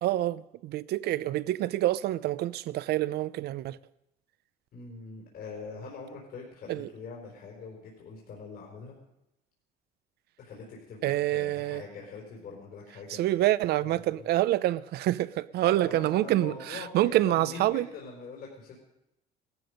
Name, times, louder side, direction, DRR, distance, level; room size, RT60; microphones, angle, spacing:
voice 1, 0.0-3.8 6.7-6.9 11.0-11.8 13.1-17.9, right 15 dB, 75° right, 0.6 m, -27 dB
voice 2, 4.7-8.9 10.4-13.2 13.8-14.2 15.6-18.8, left 4 dB, 60° left, 4.9 m, -43 dB
17.5 x 14.0 x 5.2 m
cardioid pair, 110°, 17 cm